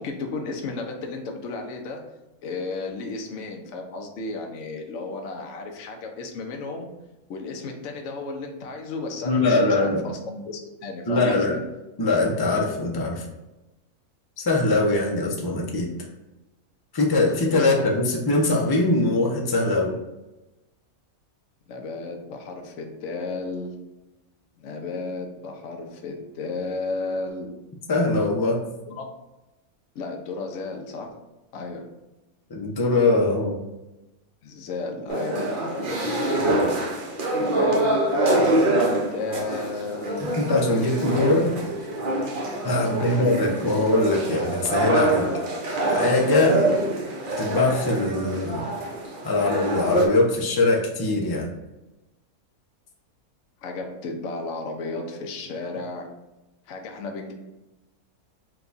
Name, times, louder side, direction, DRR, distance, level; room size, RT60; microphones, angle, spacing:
voice 1, 0.0-2.0 2.4-6.9 7.3-11.6 17.6-17.9 21.7-23.7 24.6-27.5 28.9-29.1 29.9-31.1 31.5-31.8 34.4-36.3 37.4-40.4 40.7-41.5 42.8-43.3 53.6-56.0 56.7-57.3, left 3 dB, 65° left, 2 dB, 1.0 m, -34 dB
voice 2, 9.2-10.0 11.1-11.6 12.0-13.2 14.4-15.9 16.9-19.9 27.9-28.6 32.5-33.6 40.4-41.5 42.6-45.3 45.9-46.8 47.4-48.6 49.2-51.5, left 2 dB, 40° left, -1 dB, 0.3 m, -22 dB
sound 1, 35.1-50.1, right 1 dB, 45° right, 0.7 m, -25 dB
4.6 x 2.3 x 3.9 m, 1.0 s
omnidirectional pair, 1.5 m